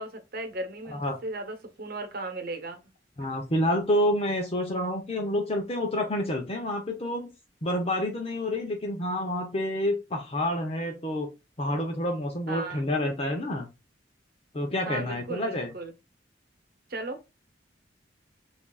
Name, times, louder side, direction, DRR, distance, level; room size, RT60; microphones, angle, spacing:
voice 1, 0.0-2.8 12.5-12.9 14.9-15.9 16.9-17.2, right 2 dB, 55° right, 1.0 m, -36 dB
voice 2, 3.2-7.3 7.6-11.3 11.6-13.7 14.5-15.7, left 1 dB, 35° left, 0.8 m, -28 dB
6.8 x 2.7 x 2.3 m
head